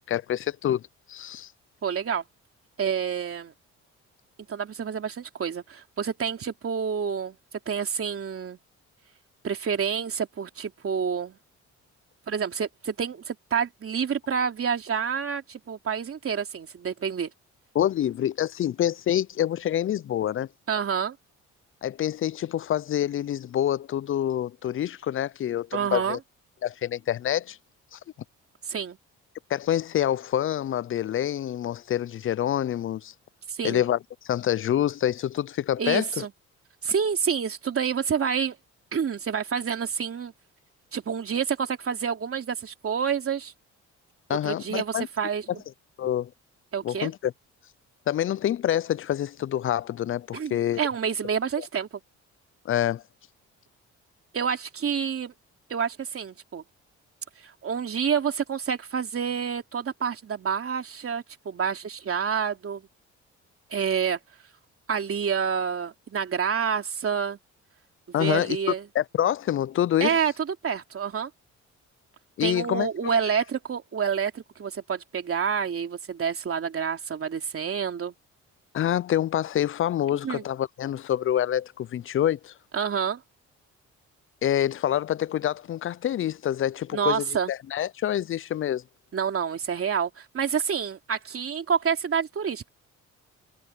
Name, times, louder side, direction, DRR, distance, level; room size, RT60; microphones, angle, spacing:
voice 1, 0.1-0.8 1.1-1.5 17.7-20.5 21.8-26.2 26.6-27.6 27.9-28.0 29.5-33.1 33.6-34.0 34.2-36.2 44.3-45.1 46.0-46.3 46.8-47.3 48.1-50.8 52.7-53.0 68.1-68.6 68.9-70.2 72.4-73.2 78.7-82.5 84.4-88.8, left 11 dB, 45° left, 0.4 m, -26 dB
voice 2, 1.8-2.2 2.8-3.5 4.5-7.4 7.6-8.6 9.4-11.4 12.3-17.3 20.7-21.2 25.7-26.2 28.6-29.0 33.5-33.8 35.8-36.3 36.8-38.6 38.9-40.3 40.9-43.5 44.4-45.6 46.7-47.1 50.3-51.9 54.3-55.3 55.7-56.6 57.4-62.9 63.7-64.2 64.9-67.4 68.2-68.8 70.0-71.3 72.4-78.1 80.2-80.4 82.7-83.2 86.9-87.5 89.1-92.7, right 7 dB, 50° right, 3.1 m, -28 dB
cardioid pair, 90°, 30 cm